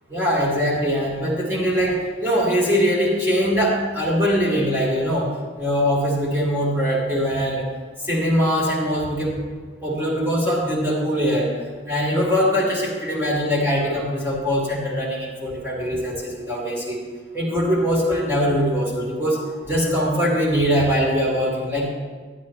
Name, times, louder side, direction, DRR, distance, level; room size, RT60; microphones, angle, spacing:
voice 1, 0.1-5.3 5.6-7.7 8.1-9.4 9.8-11.5 11.9-17.0 17.4-21.9, equal, 10° right, -5 dB, 2.0 m, -22 dB
10.5 x 10.0 x 3.2 m, 1.4 s
head